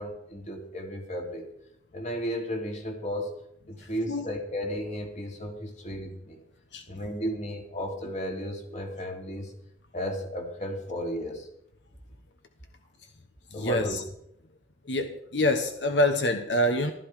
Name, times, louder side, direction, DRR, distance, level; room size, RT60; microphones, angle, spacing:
voice 1, 0.0-1.5 1.9-3.3 3.7-6.4 6.9-9.5 9.9-11.5 13.5-14.0, equal, 40° left, 2 dB, 3.0 m, -34 dB
voice 2, 13.5-14.0 14.9-16.9, left 1 dB, 85° left, 7 dB, 1.2 m, -26 dB
15.0 x 13.0 x 4.9 m, 0.74 s
head